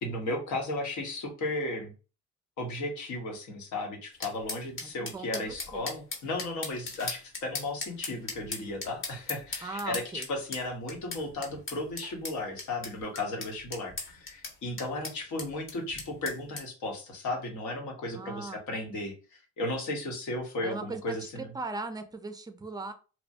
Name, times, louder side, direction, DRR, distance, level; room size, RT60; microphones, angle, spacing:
voice 1, 0.0-1.9 2.6-21.5, left 2 dB, 75° left, 2 dB, 1.1 m, -35 dB
sound 1, 4.2-16.6, left 3 dB, 40° left, 1.0 m, -39 dB
voice 2, 4.8-5.9 9.6-10.3 18.1-18.6 20.6-22.9, right 3 dB, 15° right, 8 dB, 0.4 m, -39 dB
3.0 x 2.1 x 2.6 m, 0.34 s
cardioid pair, 90°, 30 cm